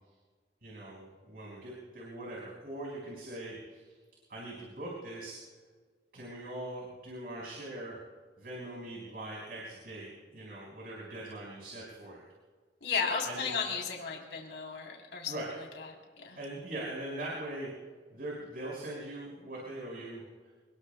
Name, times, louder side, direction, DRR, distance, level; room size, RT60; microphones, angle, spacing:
voice 1, 0.6-4.0 4.3-5.4 6.1-8.0 8.4-12.2 13.3-13.5 15.3-15.5 16.3-17.7 18.1-20.5, right 1 dB, 60° right, -3 dB, 5.2 m, -41 dB
voice 2, 12.8-15.4 15.8-15.9 16.2-16.4, left 5 dB, 85° left, -1 dB, 3.4 m, -34 dB
27.0 x 20.5 x 2.3 m, 1.5 s
head